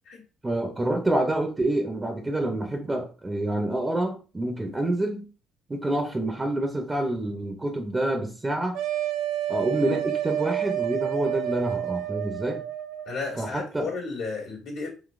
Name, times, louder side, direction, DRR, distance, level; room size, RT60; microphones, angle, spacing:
voice 1, 0.4-5.3 5.7-8.8 9.5-12.6 13.4-13.9, right 1 dB, 20° right, 4 dB, 0.7 m, -27 dB
sound 1, 8.7-13.2, right 12 dB, 75° right, 0.3 m, -29 dB
voice 2, 13.0-14.9, left 4 dB, 75° left, -1 dB, 1.5 m, -33 dB
4.0 x 2.7 x 2.5 m, 0.34 s
hypercardioid pair, 60°, 0 cm